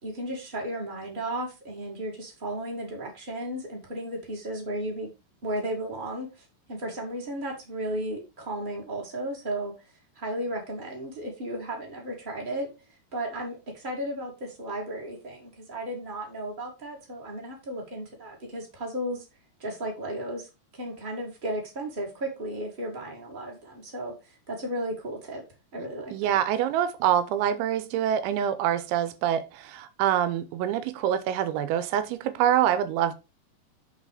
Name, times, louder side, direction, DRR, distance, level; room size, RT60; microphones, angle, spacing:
voice 1, 0.0-5.1 5.4-6.3 6.7-9.7 10.1-12.7 13.1-19.2 19.6-20.5 20.7-24.1 24.5-25.4 25.7-26.4, right 1 dB, 50° right, 0.6 m, -34 dB
voice 2, 26.1-33.1, right 10 dB, 90° right, 3.0 m, -25 dB
7.6 x 4.1 x 4.9 m
omnidirectional pair, 5.3 m